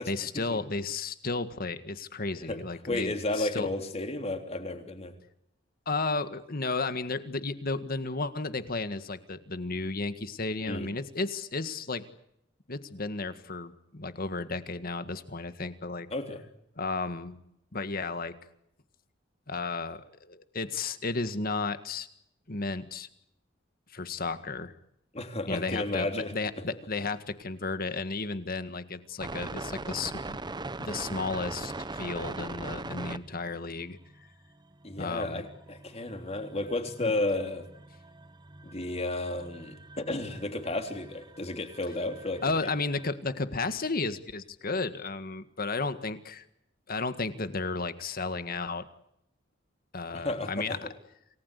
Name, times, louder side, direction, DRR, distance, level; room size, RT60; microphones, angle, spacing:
voice 1, 0.1-3.7 5.8-12.0 12.7-16.1 16.8-17.4 17.7-18.4 19.5-22.1 22.5-23.1 23.9-24.7 25.5-30.4 30.8-34.0 35.0-35.5 37.0-37.1 42.4-46.4 46.9-48.8 49.9-50.8, left 3 dB, 50° left, 11 dB, 1.8 m, -33 dB
voice 2, 2.9-5.1 10.6-10.9 16.1-16.4 25.1-26.3 34.8-37.7 38.6-42.4 50.1-50.7, left 2 dB, 35° left, 6 dB, 3.4 m, -32 dB
sound 1, 29.2-33.4 33.8-43.1, right 2 dB, 25° right, 0.9 m, -42 dB
28.5 x 19.5 x 8.3 m, 0.78 s
head